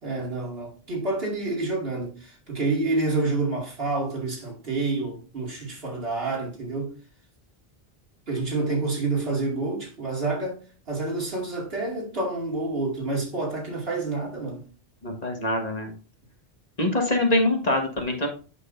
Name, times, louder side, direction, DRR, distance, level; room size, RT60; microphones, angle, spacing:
voice 1, 0.0-6.9 8.3-10.6 10.9-14.6, right 3 dB, 65° right, 2.6 m, -28 dB
voice 2, 15.0-15.9 16.8-18.3, left 1 dB, 40° left, 1.6 m, -24 dB
8.6 x 6.4 x 2.6 m
omnidirectional pair, 1.1 m